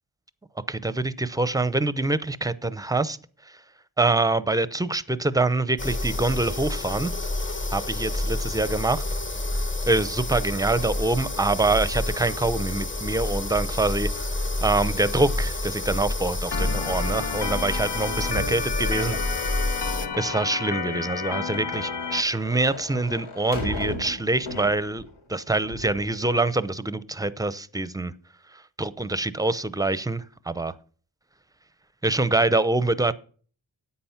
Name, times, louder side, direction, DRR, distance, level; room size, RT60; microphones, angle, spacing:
voice 1, 0.7-3.2 4.0-7.1 7.7-9.0 9.9-14.3 14.6-19.4 20.2-25.0 25.3-28.1 28.8-30.7 32.0-33.1, right 2 dB, 10° right, 0.7 m, -25 dB
sound 1, 5.8-20.1, left 2 dB, 25° left, 1.2 m, -29 dB
Organ, 16.5-22.2, left 6 dB, 60° left, 1.2 m, -31 dB
sound 2, 18.3-25.2 25.6-26.2, left 2 dB, 90° left, 3.4 m, -37 dB
10.0 x 8.6 x 5.8 m
wide cardioid pair, 95°, 47 cm